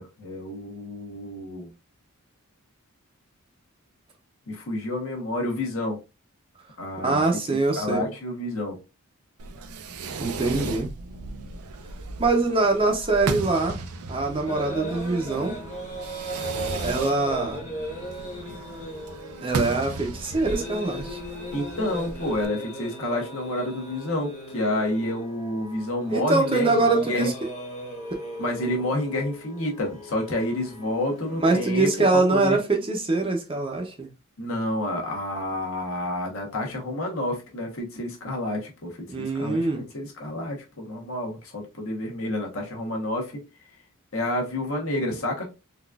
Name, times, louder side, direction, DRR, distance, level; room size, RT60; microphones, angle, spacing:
voice 1, 0.0-1.7 4.5-6.0 6.8-7.2 7.5-8.8 10.4-10.7 21.5-27.3 28.4-31.9 32.1-32.6 34.4-39.6 39.9-43.4 44.1-45.4, left 1 dB, 65° left, 1.1 m, -29 dB
voice 2, 7.0-8.1 10.2-10.9 12.2-13.8 14.1-15.6 16.8-17.6 19.4-21.2 26.1-27.3 31.4-34.1 39.1-39.9, right 3 dB, 25° right, 0.6 m, -23 dB
Fireworks, 9.4-22.5, right 3 dB, 80° right, 0.5 m, -36 dB
sound 1, 14.4-32.1, right 1 dB, 30° left, 1.1 m, -38 dB
3.9 x 2.4 x 2.3 m
head